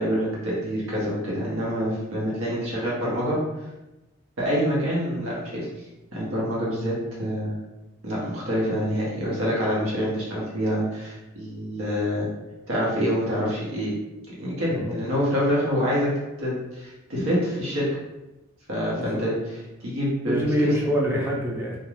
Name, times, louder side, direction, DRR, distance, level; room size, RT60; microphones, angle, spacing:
voice 1, 0.0-3.4 4.4-5.7 6.1-7.5 8.0-12.3 12.7-13.9 14.3-16.1 16.4-17.9 18.7-19.3 19.8-20.7, equal, 90° right, -6 dB, 0.9 m, -26 dB
voice 2, 20.3-21.8, equal, 10° right, -2 dB, 0.4 m, -25 dB
2.4 x 2.2 x 3.1 m, 1.0 s
head